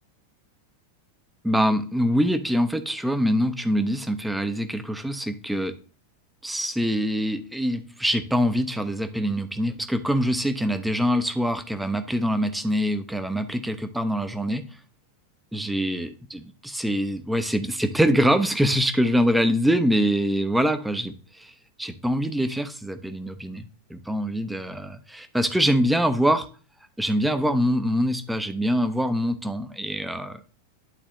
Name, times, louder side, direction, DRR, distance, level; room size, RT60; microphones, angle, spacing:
voice 1, 1.4-5.7 6.4-14.6 15.5-21.5 21.8-26.5 27.0-30.4, equal, 5° right, 9 dB, 0.7 m, -24 dB
11.0 x 4.0 x 3.0 m, 0.37 s
figure-of-eight pair, 90°, 0 cm